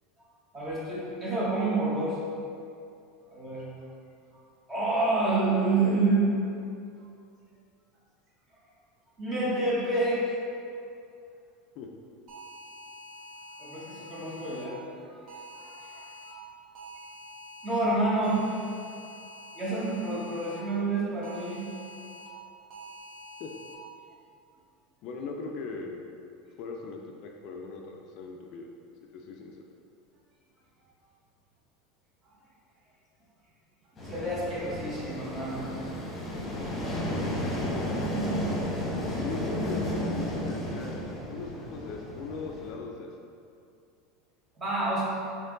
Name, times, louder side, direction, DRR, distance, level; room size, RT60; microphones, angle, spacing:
voice 1, 0.5-2.2 3.3-3.6 4.7-6.3 9.2-10.4 13.6-15.2 15.5-16.4 17.6-18.4 19.5-21.6 34.0-35.7 36.8-37.0 44.6-45.0, right 2 dB, 20° right, -7 dB, 1.2 m, -28 dB
sound 1, 12.3-14.7 15.3-16.3 16.7-17.8 18.2-20.6 21.2-22.3 22.7-23.7, equal, 40° right, 0.9 m, -46 dB
voice 2, 25.0-26.0 26.6-28.7 29.1-29.6 39.2-41.0 41.3-43.1, left 4 dB, 50° left, 1 dB, 0.4 m, -39 dB
sound 2, 34.0-42.7, equal, 20° left, 1.1 m, -33 dB
4.4 x 2.9 x 3.8 m, 2.5 s
supercardioid pair, 150°, 0 cm